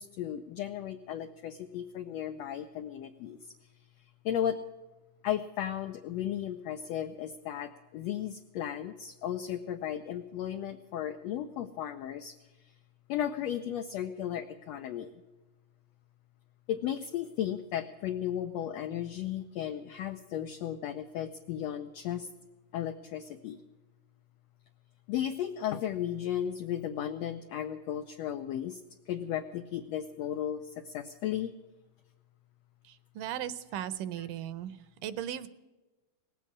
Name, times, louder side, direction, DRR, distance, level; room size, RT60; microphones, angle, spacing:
voice 1, 0.0-3.4 4.2-4.6 5.2-12.3 12.6-12.7 13.1-15.1 16.7-22.3 22.7-23.6 25.1-28.8 29.1-31.5 34.2-34.3, left 10 dB, 85° left, 7 dB, 1.5 m, -35 dB
voice 2, 32.9-34.8 35.0-35.5, right 11 dB, 80° right, 14 dB, 2.2 m, -37 dB
19.0 x 8.4 x 8.5 m, 1.1 s
omnidirectional pair, 3.8 m